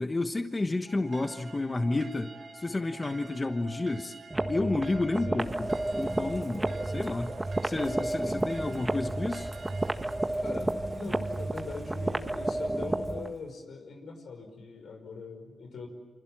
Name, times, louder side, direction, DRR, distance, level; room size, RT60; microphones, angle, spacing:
voice 1, 0.0-4.1 4.5-7.3 7.6-9.5, left 2 dB, 30° left, 7 dB, 1.3 m, -31 dB
sound 1, 0.9-10.3, right 4 dB, 65° right, 2.8 m, -49 dB
sound 2, 4.3-13.3, right 1 dB, 15° right, 1.5 m, -31 dB
Bird / Rain, 5.4-13.5, right 3 dB, 45° right, 2.0 m, -47 dB
voice 2, 10.4-15.9, left 4 dB, 85° left, 5 dB, 5.4 m, -42 dB
28.5 x 26.5 x 7.6 m, 1.2 s
cardioid pair, 75°, 0 cm